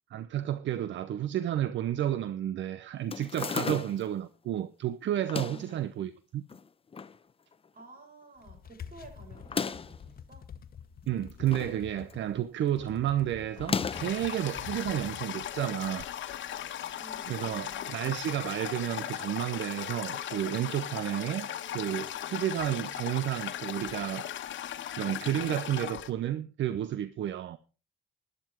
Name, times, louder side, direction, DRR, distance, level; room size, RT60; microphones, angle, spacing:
voice 1, 0.1-6.4 11.1-16.1 17.3-24.3 24.9-27.6, right 11 dB, 70° right, 0.8 m, -31 dB
sound 1, 3.1-4.1 5.2-5.7 6.5-7.2 7.5-7.6 7.8-7.9 9.4-10.0 11.0-11.8 12.1-12.4 13.6-14.2, left 5 dB, 30° left, 0.8 m, -34 dB
voice 2, 7.7-10.5 16.9-18.1, right 2 dB, 45° right, 5.8 m, -52 dB
sound 2, 8.4-18.3, left 7 dB, 50° left, 1.2 m, -48 dB
Toilet flush, 13.9-26.1, left 11 dB, 70° left, 1.3 m, -38 dB
12.0 x 11.5 x 4.7 m
cardioid pair, 90°, 20 cm